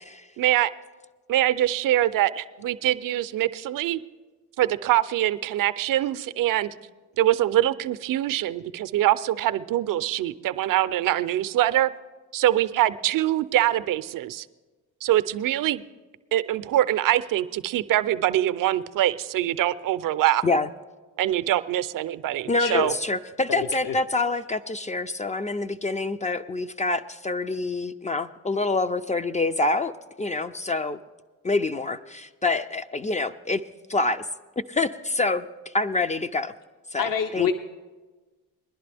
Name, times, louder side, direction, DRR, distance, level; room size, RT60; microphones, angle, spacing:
voice 1, 0.4-0.7 1.3-4.0 4.6-6.7 7.2-11.9 12.3-14.5 15.0-15.8 16.3-20.4 21.2-22.9, right 13 dB, 55° right, 14 dB, 0.5 m, -24 dB
voice 2, 22.5-29.9 30.2-31.0 31.4-33.6 33.9-34.2 34.7-35.5 35.7-36.5 36.9-37.5, left 3 dB, 20° left, 10 dB, 0.4 m, -26 dB
voice 3, 23.5-23.9 37.0-37.5, left 7 dB, 55° left, 7 dB, 0.8 m, -26 dB
20.5 x 11.0 x 3.4 m, 1.3 s
supercardioid pair, 60°, 39 cm